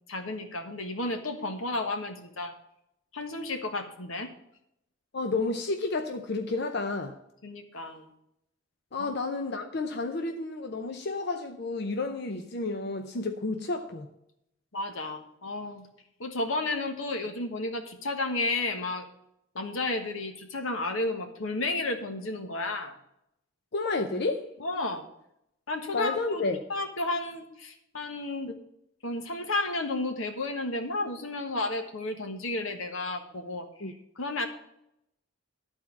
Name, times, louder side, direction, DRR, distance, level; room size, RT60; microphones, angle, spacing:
voice 1, 0.1-2.5 3.1-4.3 7.4-8.1 9.0-9.1 14.7-15.9 16.2-19.1 19.5-22.9 24.6-25.0 25.7-26.4 26.7-28.5 29.0-34.5, left 2 dB, 85° left, 1.3 m, -32 dB
voice 2, 5.1-7.2 8.9-14.1 23.7-24.5 25.9-26.6 28.5-28.6 33.8-33.9, left 3 dB, 55° left, 0.7 m, -31 dB
12.0 x 4.4 x 7.2 m
head